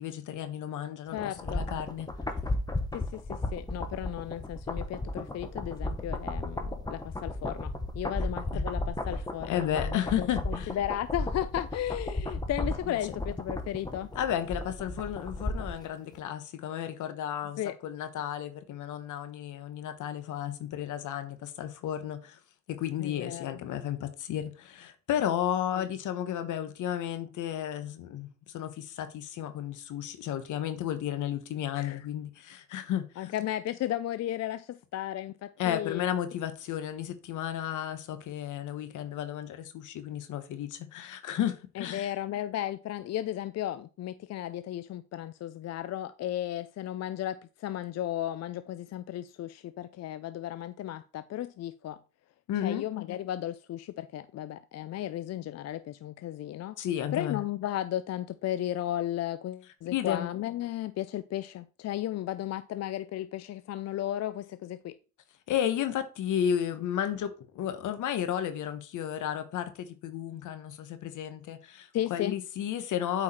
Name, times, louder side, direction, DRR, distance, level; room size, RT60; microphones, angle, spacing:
voice 1, 0.0-2.1 8.5-8.6 9.4-10.8 12.9-13.0 13.9-22.4 22.7-33.3 35.6-42.1 52.5-52.8 56.8-57.4 59.8-60.3 65.5-73.2, left 10 dB, 80° left, 1.2 m, -33 dB
voice 2, 1.1-1.6 2.9-14.1 17.6-17.7 23.0-23.6 25.8-25.9 31.8-32.0 33.2-36.1 41.8-52.0 52.6-56.8 57.1-64.9 71.9-72.3, left 12 dB, 60° left, 0.5 m, -35 dB
sound 1, 1.2-15.9 16.1-16.2, left 2 dB, 15° left, 1.2 m, -34 dB
8.5 x 4.8 x 4.3 m
cardioid pair, 90°, 30 cm